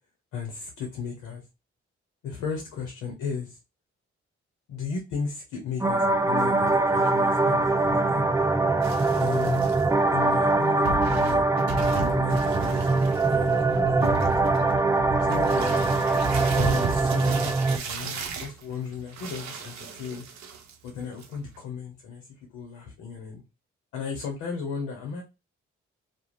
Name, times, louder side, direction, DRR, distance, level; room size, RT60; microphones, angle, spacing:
voice 1, 0.3-1.4 2.2-3.6 4.7-8.3 9.2-9.7 10.1-11.5 12.1-14.1 15.2-15.8 16.4-20.2 20.8-22.2 22.5-23.4 23.9-25.2, left 6 dB, 90° left, 2 dB, 0.6 m, -35 dB
sound 1, 5.8-17.8, right 3 dB, 10° right, 0.3 m, -23 dB
sound 2, 8.8-9.8 10.5-10.6 10.8-20.9 21.2-21.6, right 4 dB, 65° right, 0.6 m, -34 dB
2.4 x 2.0 x 3.0 m, 0.26 s
hypercardioid pair, 40°, 31 cm